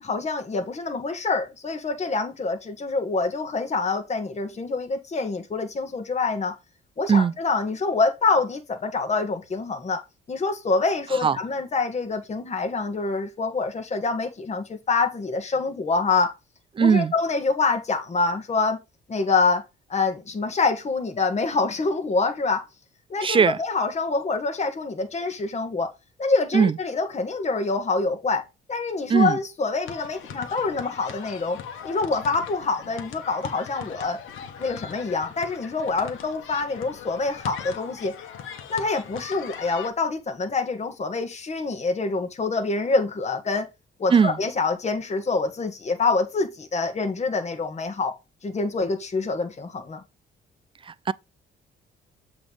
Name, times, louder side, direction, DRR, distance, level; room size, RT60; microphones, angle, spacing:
voice 1, 0.0-6.5 7.0-10.0 10.3-16.3 16.8-18.8 19.1-19.6 19.9-22.7 23.1-25.9 26.2-28.4 28.7-34.2 34.6-38.1 38.7-43.7 44.0-48.2 48.4-50.0, left 3 dB, 35° left, 1.6 m, -26 dB
voice 2, 16.8-17.1 23.2-23.6 26.5-26.8 29.1-29.4 44.1-44.3 50.9-51.1, right 6 dB, 25° right, 0.4 m, -19 dB
sound 1, 29.8-39.9, left 8 dB, 85° left, 1.2 m, -40 dB
7.8 x 3.3 x 5.2 m
cardioid pair, 90°, 20 cm